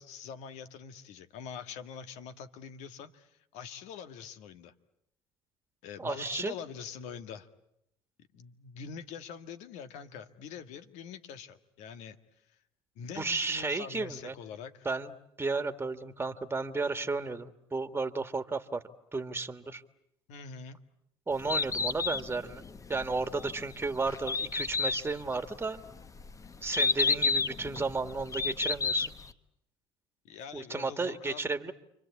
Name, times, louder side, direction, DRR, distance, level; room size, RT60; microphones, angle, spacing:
voice 1, 0.0-4.7 5.8-7.5 8.3-12.2 12.5-12.6 13.0-14.9 20.3-20.8 30.2-31.4, left 7 dB, 70° left, 9 dB, 1.7 m, -44 dB
voice 2, 6.0-6.5 13.2-14.3 14.9-15.1 15.4-18.8 19.1-19.8 21.3-22.6 22.9-25.8 26.6-29.1 30.5-31.7, right 3 dB, 20° right, 9 dB, 1.8 m, -33 dB
Bird, 21.3-29.3, left 4 dB, 25° left, 1.3 m, -31 dB
29.0 x 24.0 x 8.5 m, 0.78 s
supercardioid pair, 75°, 12 cm